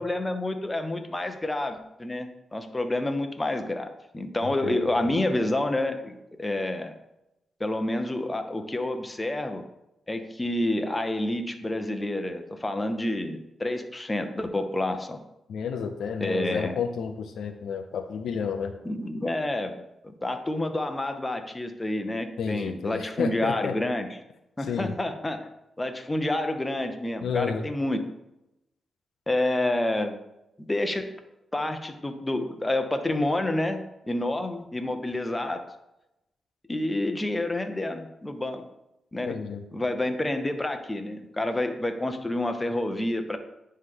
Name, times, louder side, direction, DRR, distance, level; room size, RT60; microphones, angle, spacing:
voice 1, 0.0-6.9 7.6-9.6 10.1-15.2 16.2-16.8 18.8-24.1 24.6-25.5 25.8-28.1 29.3-30.2 30.6-31.1 31.5-35.6 36.7-38.6 39.1-39.4 39.7-43.4, left 1 dB, 15° left, 6 dB, 0.8 m, -29 dB
voice 2, 4.4-5.1 15.5-18.7 22.4-23.7 24.7-25.0 27.2-27.7 39.3-39.6, left 6 dB, 80° left, 7 dB, 0.5 m, -31 dB
9.6 x 3.2 x 3.8 m, 0.89 s
cardioid pair, 80°, 0 cm